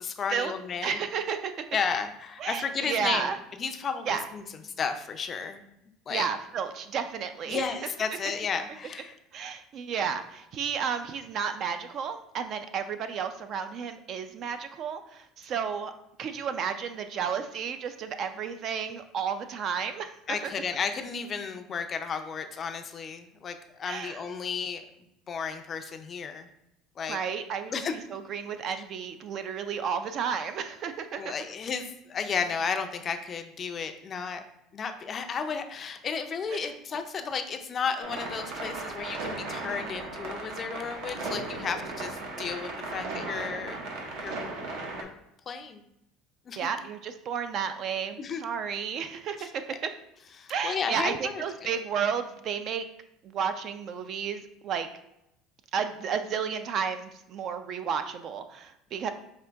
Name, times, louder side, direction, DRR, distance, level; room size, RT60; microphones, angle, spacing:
voice 1, 0.0-1.0 1.7-3.3 3.6-5.6 6.1-6.3 7.5-9.2 20.3-24.8 25.3-26.5 27.0-27.2 27.7-28.0 31.2-34.4 34.7-43.8 44.2-44.4 45.0-45.1 45.5-45.8 46.5-46.7 48.2-48.5 49.4-49.8 50.4-51.4, left 6 dB, 30° left, 7 dB, 0.4 m, -33 dB
voice 2, 0.8-1.5 2.4-3.4 4.1-4.3 6.1-7.6 9.3-15.9 16.2-20.5 23.9-24.2 27.1-27.7 28.1-31.3 42.9-43.5 46.6-49.9 50.5-52.8 53.2-54.9 55.7-59.1, right 7 dB, 45° right, 9 dB, 0.3 m, -32 dB
sound 1, 38.0-45.0, right 3 dB, 65° right, 0.8 m, -36 dB
5.0 x 2.7 x 3.4 m, 0.82 s
cardioid pair, 140°, 0 cm